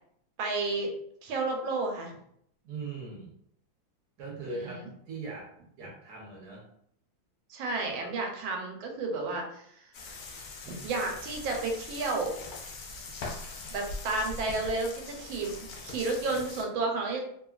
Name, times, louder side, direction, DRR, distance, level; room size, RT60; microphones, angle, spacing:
voice 1, 0.4-0.9 1.2-2.1 4.5-4.9 7.5-9.9 10.7-12.3 13.7-15.5 15.8-17.2, right 3 dB, 90° right, 1 dB, 1.4 m, -32 dB
voice 2, 2.6-3.3 4.2-5.5 5.8-6.6, right 3 dB, 65° right, -2 dB, 1.1 m, -40 dB
sound 1, 9.9-16.6, left 3 dB, 80° left, 0.8 m, -42 dB
3.1 x 2.3 x 2.3 m, 0.70 s
omnidirectional pair, 2.1 m